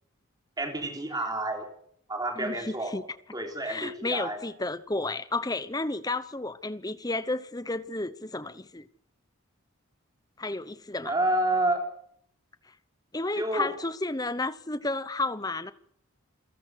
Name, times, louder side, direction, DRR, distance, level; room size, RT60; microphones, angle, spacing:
voice 1, 0.6-1.7 2.1-2.9 3.3-4.4 11.0-11.9 13.3-13.7, right 1 dB, 20° right, 3.4 m, -29 dB
voice 2, 2.4-3.0 3.6-8.9 10.4-11.1 13.1-15.7, left 2 dB, 15° left, 0.9 m, -32 dB
28.0 x 17.0 x 6.5 m
head